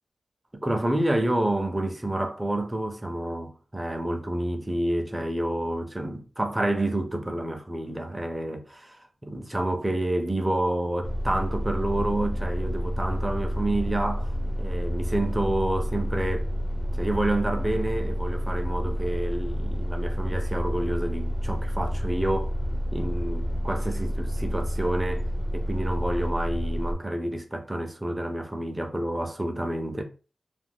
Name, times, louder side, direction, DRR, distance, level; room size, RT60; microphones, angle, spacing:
voice 1, 0.6-14.3 14.6-16.5 16.9-22.6 22.9-25.2 25.5-30.0, right 1 dB, 20° right, 0.5 m, -29 dB
sound 1, 11.0-26.9, equal, 40° left, 0.4 m, -29 dB
2.4 x 2.1 x 3.4 m
wide cardioid pair, 75°, 0 cm